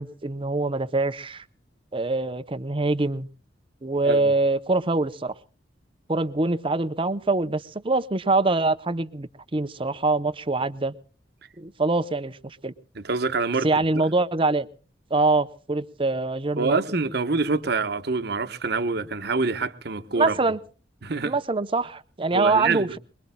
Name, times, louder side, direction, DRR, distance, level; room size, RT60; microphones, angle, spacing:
voice 1, 0.0-1.4 1.9-3.3 3.8-5.3 6.1-10.9 11.6-12.7 13.6-14.7 15.1-16.8 20.1-20.6 21.2-23.0, right 3 dB, 30° right, 0.7 m, -24 dB
voice 2, 12.9-13.7 13.9-14.0 16.6-20.3 21.0-21.3 22.3-22.9, right 3 dB, 60° right, 1.0 m, -26 dB
24.5 x 22.0 x 2.2 m
head